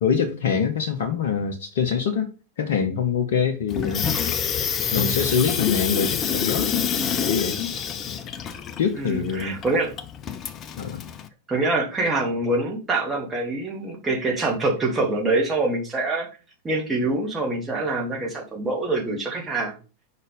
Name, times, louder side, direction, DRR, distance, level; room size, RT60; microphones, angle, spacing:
voice 1, 0.0-2.3 2.6-4.1 4.9-6.7 7.2-7.6 8.8-9.6 10.8-11.1, left 6 dB, 55° left, 4 dB, 0.8 m, -24 dB
Water tap faucet / Sink (filling or washing), 3.7-11.3, left 7 dB, 30° left, 0.6 m, -27 dB
voice 2, 8.9-9.9 11.5-16.3 16.6-19.7, right 2 dB, 15° right, -1 dB, 2.0 m, -25 dB
5.2 x 4.1 x 5.1 m, 0.34 s
figure-of-eight pair, 90°, 0 cm